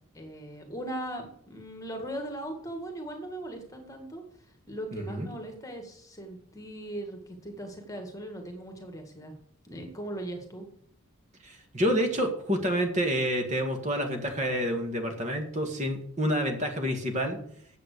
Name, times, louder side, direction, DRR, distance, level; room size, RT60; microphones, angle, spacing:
voice 1, 0.1-9.3 9.6-10.7, right 1 dB, 15° left, 4 dB, 1.9 m, -39 dB
voice 2, 4.9-5.3 11.4-17.5, equal, 30° right, 4 dB, 1.7 m, -28 dB
9.3 x 7.8 x 6.7 m, 0.65 s
head